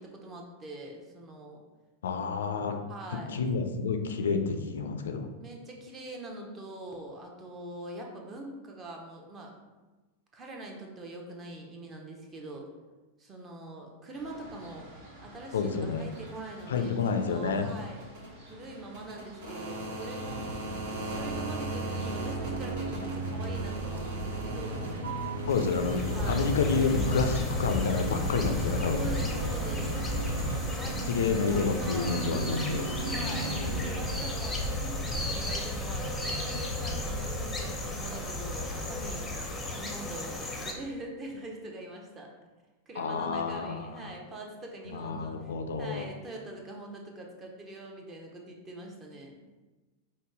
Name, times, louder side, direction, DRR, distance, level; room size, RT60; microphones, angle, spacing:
voice 1, 0.0-1.6 2.9-3.4 5.4-9.5 10.3-12.7 13.2-14.9 15.2-17.0 17.3-18.0 18.5-20.7 21.1-24.8 26.1-26.5 28.9-30.0 30.8-32.2 33.1-39.3 39.7-42.3 42.9-49.4, right 2 dB, 25° right, 1 dB, 0.7 m, -43 dB
voice 2, 2.0-2.8 3.1-5.3 15.5-16.1 16.7-17.7 25.5-29.1 31.1-32.9 33.1-33.6 43.0-44.1 44.9-46.1, left 5 dB, 65° left, 6 dB, 0.3 m, -29 dB
sound 1, 14.1-28.9, right 1 dB, 50° right, 1.2 m, -41 dB
sound 2, 20.2-35.6, right 2 dB, 70° right, 0.4 m, -37 dB
sound 3, 25.5-40.7, left 1 dB, 10° left, 0.6 m, -33 dB
5.0 x 2.2 x 3.5 m, 1.2 s
figure-of-eight pair, 90°, 0 cm